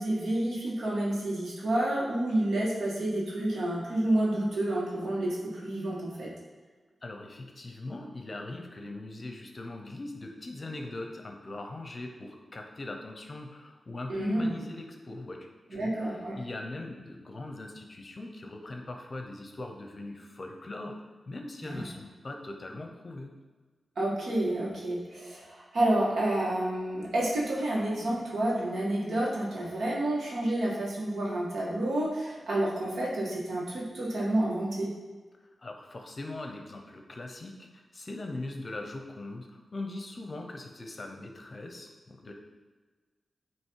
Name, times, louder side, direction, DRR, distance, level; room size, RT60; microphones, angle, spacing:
voice 1, 0.0-6.3 14.1-14.5 15.7-16.4 21.6-21.8 24.0-34.9, right 1 dB, 85° right, -5 dB, 1.8 m, -29 dB
voice 2, 7.0-21.0 21.3-23.3 35.4-42.3, left 2 dB, 40° left, 3 dB, 0.8 m, -41 dB
9.0 x 3.1 x 4.7 m, 1.3 s
wide cardioid pair, 100°, 0 cm